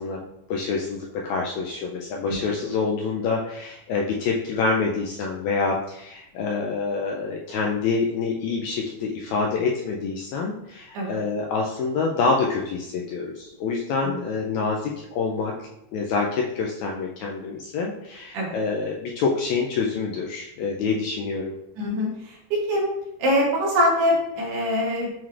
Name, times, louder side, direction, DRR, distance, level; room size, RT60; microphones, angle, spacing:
voice 1, 0.0-15.6 15.9-21.5, left 4 dB, 80° left, -1 dB, 1.7 m, -26 dB
voice 2, 21.8-22.9 23.2-25.1, equal, 80° right, -2 dB, 2.7 m, -23 dB
7.2 x 3.1 x 2.4 m, 0.81 s
omnidirectional pair, 3.7 m